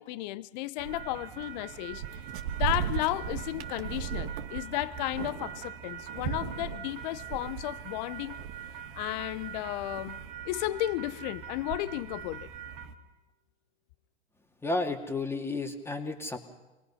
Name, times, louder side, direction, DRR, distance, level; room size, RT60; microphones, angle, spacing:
voice 1, 0.0-2.2 2.6-8.4 8.9-10.2 10.5-12.5, left 17 dB, 45° left, 0.8 m, -33 dB
sound 1, 0.8-12.9, right 8 dB, 45° right, 2.2 m, -38 dB
voice 2, 14.6-16.4, left 2 dB, 5° left, 2.4 m, -32 dB
27.0 x 20.0 x 5.7 m
hypercardioid pair, 110°, 32 cm